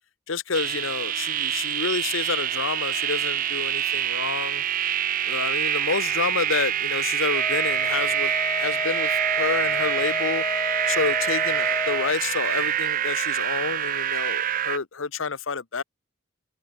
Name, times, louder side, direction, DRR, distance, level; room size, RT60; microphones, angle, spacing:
voice 1, 0.3-4.6 5.2-10.4 10.9-15.8, left 4 dB, 85° left, 1.1 m, -29 dB
sound 1, 0.5-14.8, right 11 dB, 45° right, 0.4 m, -26 dB
Wind instrument woodwind instrument, 7.3-12.2, left 3 dB, 15° left, 0.7 m, -31 dB
head